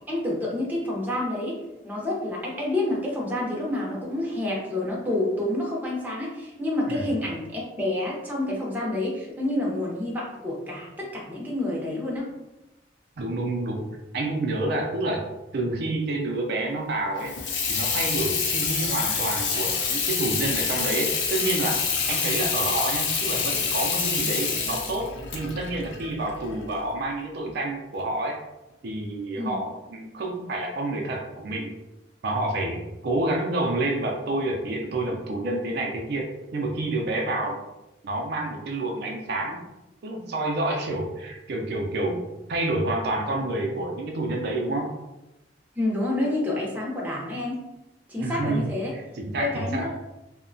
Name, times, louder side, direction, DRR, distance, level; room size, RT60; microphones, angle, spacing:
voice 1, 0.1-1.6 1.8-12.3 29.4-29.5 45.8-47.6 48.1-48.9 49.4-50.0, left 1 dB, 10° right, -4 dB, 0.6 m, -28 dB
voice 2, 13.2-13.9 14.1-15.2 15.5-17.3 17.7-21.8 22.1-28.4 28.8-31.7 32.2-37.6 38.0-39.7 40.0-42.2 42.5-44.9 48.2-49.9, right 2 dB, 60° right, 1 dB, 0.4 m, -28 dB
Water tap faucet / Sink (filling or washing), 17.2-26.8, left 5 dB, 70° left, 0.4 m, -27 dB
2.7 x 2.1 x 2.6 m, 0.96 s
head